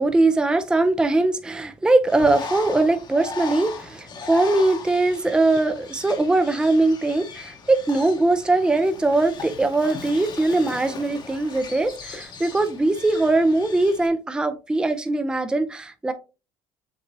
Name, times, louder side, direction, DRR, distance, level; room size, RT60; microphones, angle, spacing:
voice 1, 0.0-16.1, right 2 dB, 5° right, 9 dB, 0.5 m, -21 dB
Bird, 2.1-14.1, left 4 dB, 35° left, 1.0 m, -38 dB
7.4 x 2.7 x 2.6 m, 0.30 s
supercardioid pair, 105°, 12 cm